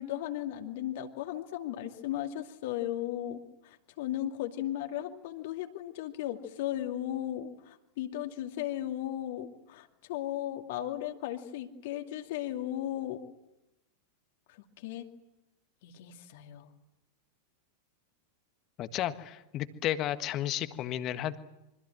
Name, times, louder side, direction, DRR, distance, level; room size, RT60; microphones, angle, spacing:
voice 1, 0.0-13.2 14.8-15.1 15.8-16.7, left 12 dB, 50° left, 5 dB, 2.5 m, -36 dB
voice 2, 18.8-21.4, left 12 dB, 35° left, 11 dB, 1.6 m, -33 dB
27.0 x 24.5 x 7.7 m, 0.92 s
figure-of-eight pair, 90°, 0 cm